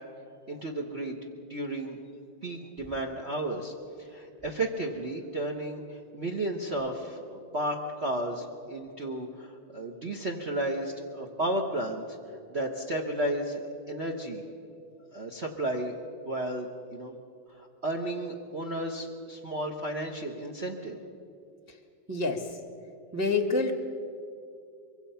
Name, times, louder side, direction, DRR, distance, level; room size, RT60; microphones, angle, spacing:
voice 1, 0.5-1.2 1.5-2.0 2.4-12.0 12.5-14.4 15.1-16.0 16.3-17.1 17.6-21.0, right 1 dB, 35° right, 3 dB, 1.4 m, -33 dB
voice 2, 22.1-22.6 23.1-23.7, left 3 dB, 10° right, 5 dB, 1.2 m, -27 dB
24.5 x 23.5 x 5.7 m, 2.5 s
omnidirectional pair, 2.2 m